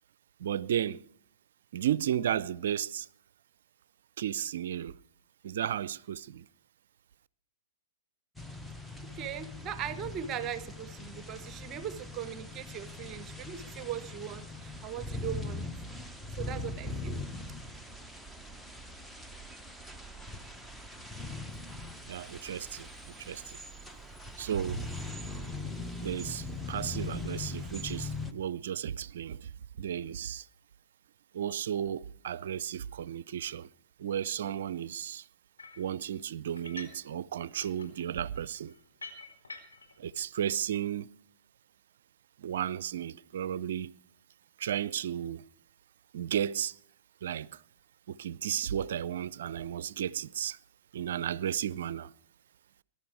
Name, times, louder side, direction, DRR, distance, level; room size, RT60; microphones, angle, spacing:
voice 1, 0.4-1.0 1.7-3.1 4.2-4.9 5.4-6.5 22.1-23.6 24.4-24.8 26.0-29.5 29.8-30.5 31.3-33.7 34.0-35.3 35.8-38.7 40.0-41.1 42.4-43.9 44.6-45.4 46.1-46.8 47.2-47.6 48.1-50.6 50.9-52.1, right 10 dB, 60° right, 0.5 m, -34 dB
sound 1, 8.4-28.3, left 2 dB, ahead, 1.0 m, -41 dB
voice 2, 9.1-15.7 16.4-17.2, right 9 dB, 30° right, 1.0 m, -39 dB
sound 2, 35.6-35.9 36.6-37.1 37.3-40.0, left 4 dB, 80° left, 4.4 m, -47 dB
21.5 x 11.5 x 4.7 m
figure-of-eight pair, 110°, 0 cm